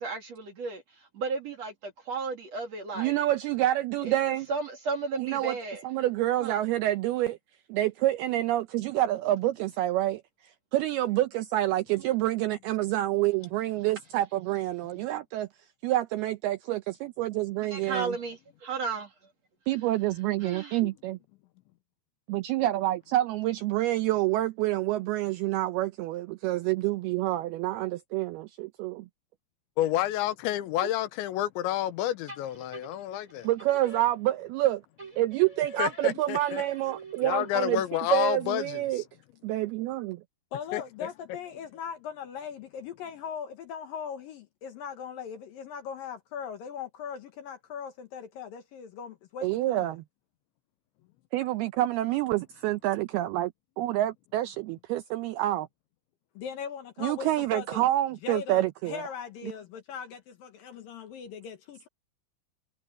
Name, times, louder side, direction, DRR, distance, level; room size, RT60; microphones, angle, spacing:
voice 1, 0.0-3.1 4.0-4.1 4.5-5.8 6.4-6.6 17.6-19.1 20.4-20.8, right 4 dB, 45° right, 2.7 m, -34 dB
voice 2, 3.0-4.5 5.2-5.6 5.8-7.4 7.7-15.5 15.8-18.1 19.7-21.2 22.3-29.1 33.4-34.8 35.2-39.0 39.4-40.2 49.4-50.0 51.3-53.5 53.8-55.7 57.0-59.0, right 15 dB, 85° right, 2.3 m, -28 dB
voice 3, 29.8-33.5 35.8-36.6 37.2-39.0 40.7-40.8, left 13 dB, 90° left, 3.3 m, -29 dB
sound 1, 32.3-34.6 35.0-37.8, right 2 dB, 15° right, 6.1 m, -47 dB
voice 4, 40.5-49.9 56.3-57.9 58.2-61.9, left 7 dB, 65° left, 2.5 m, -39 dB
omnidirectional pair, 5.2 m